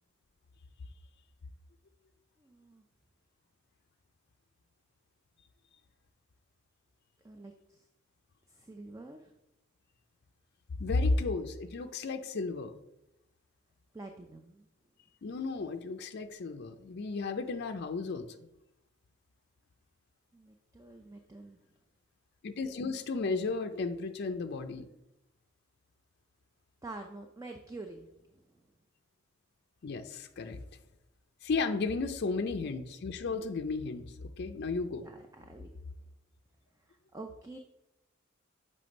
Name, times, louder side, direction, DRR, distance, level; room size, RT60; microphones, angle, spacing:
voice 1, 2.4-2.8 7.2-7.9 8.5-9.3 13.9-14.7 20.3-21.6 26.8-28.6 35.0-35.7 36.8-37.6, right 2 dB, 15° right, 4 dB, 0.4 m, -47 dB
voice 2, 10.8-12.8 15.2-18.5 22.4-24.9 29.8-30.6 31.4-35.0, left 3 dB, 55° left, 7 dB, 0.4 m, -34 dB
6.9 x 3.3 x 5.2 m, 0.89 s
head